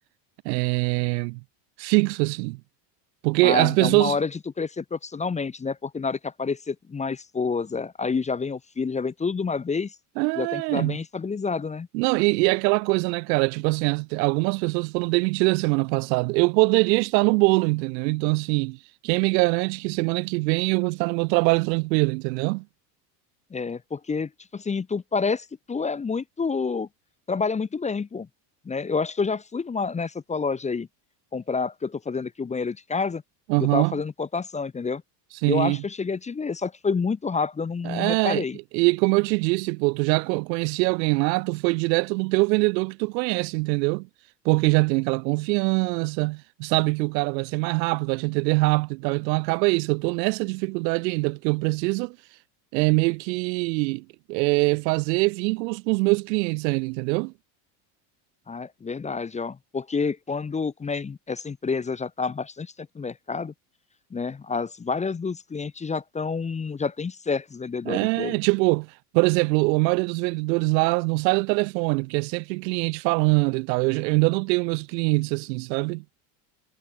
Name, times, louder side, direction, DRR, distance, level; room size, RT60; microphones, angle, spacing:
voice 1, 0.4-1.4 1.8-2.6 3.2-4.2 10.2-11.0 11.9-18.8 19.0-22.6 33.5-34.0 35.4-35.8 37.8-38.4 38.7-44.1 44.4-52.2 52.7-57.3 67.9-76.0, right 27 dB, 90° right, 0.8 m, -23 dB
voice 2, 3.4-4.3 4.6-9.9 10.4-11.9 23.5-26.9 27.3-28.3 28.6-30.9 31.3-33.2 33.6-35.0 35.5-38.6 58.5-63.5 64.1-68.4, left 4 dB, 15° left, 0.7 m, -28 dB
supercardioid pair, 115°, 49 cm